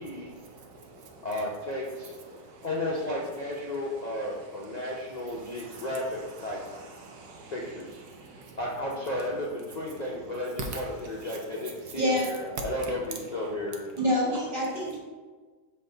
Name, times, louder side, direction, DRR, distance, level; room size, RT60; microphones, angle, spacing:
voice 1, 0.0-1.2 2.3-2.7 4.8-5.9 6.4-7.7 8.0-8.6 10.7-10.8 12.9-13.0, right 3 dB, 70° right, 2 dB, 1.2 m, -47 dB
voice 2, 1.2-2.4 2.6-6.6 7.5-8.0 8.6-13.8, left 1 dB, 85° left, -4 dB, 0.3 m, -33 dB
voice 3, 14.0-15.0, left 1 dB, 30° right, -4 dB, 1.7 m, -26 dB
5.5 x 4.5 x 3.9 m, 1.4 s
omnidirectional pair, 1.9 m